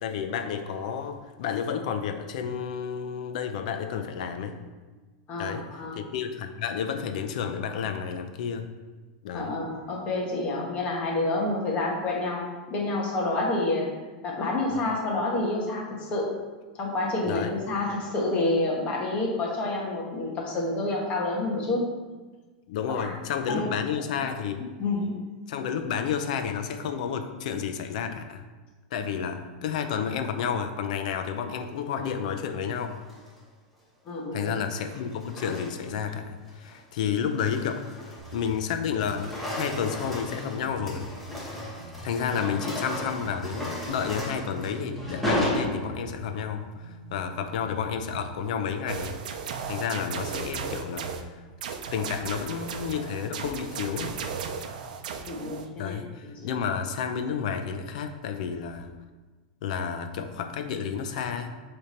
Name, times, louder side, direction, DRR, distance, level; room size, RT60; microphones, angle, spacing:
voice 1, 0.0-4.6 5.4-8.7 9.2-9.6 14.7-14.9 17.2-17.5 22.7-24.6 25.5-28.4 28.9-33.0 34.3-41.1 42.0-49.2 49.7-51.4 51.9-54.2 55.8-58.9 59.6-61.5, left 7 dB, 65° left, 7 dB, 0.7 m, -31 dB
voice 2, 5.3-6.0 9.3-13.9 14.2-16.3 16.7-21.8 22.9-23.1 23.5-23.7 24.0-24.1 24.6-25.2 34.0-34.5 55.3-56.0 56.2-56.3, left 2 dB, 30° left, -2 dB, 1.5 m, -28 dB
sound 1, 32.9-33.4 34.5-36.1 36.5-36.8 37.2-38.7 38.9-46.3, left 1 dB, 5° left, 1.2 m, -34 dB
sound 2, 38.2-48.3, right 2 dB, 40° right, 1.5 m, -44 dB
sound 3, 48.9-51.2 51.6-55.7, right 6 dB, 80° right, 0.6 m, -35 dB
6.8 x 3.5 x 4.4 m, 1.3 s
supercardioid pair, 150°, 4 cm